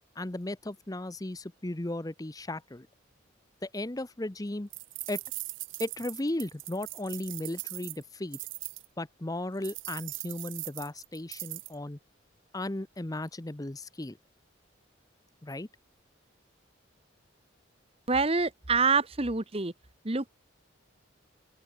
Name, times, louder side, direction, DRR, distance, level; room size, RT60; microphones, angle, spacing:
voice 1, 0.2-2.9 3.6-4.7 5.1-5.2 5.8-8.4 9.0-12.0 12.5-14.2 15.4-15.7, left 1 dB, 20° left, 0.7 m, -36 dB
sound 1, 4.7-8.9 9.6-11.7, right 20 dB, 70° right, 0.6 m, -40 dB
voice 2, 18.1-19.7 20.0-20.3, right 4 dB, 30° right, 1.2 m, -26 dB
head